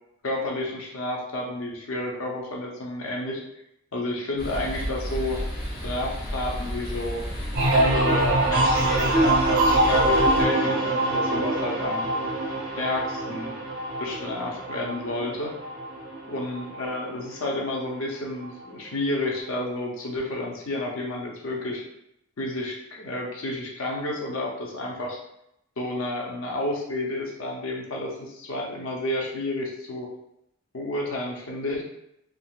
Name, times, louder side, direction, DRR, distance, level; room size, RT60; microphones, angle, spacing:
voice 1, 0.2-3.4 3.9-5.4 5.8-7.2 7.7-12.1 12.7-13.5 14.0-15.5 16.3-21.8 22.4-25.2 25.8-30.1 30.7-31.8, left 1 dB, 80° left, -1 dB, 0.7 m, -31 dB
sound 1, 4.4-10.4, equal, 50° left, 0.7 m, -32 dB
sound 2, 7.5-17.1 17.5-18.0, right 1 dB, 90° right, 1.3 m, -24 dB
3.6 x 2.3 x 2.4 m, 0.79 s
head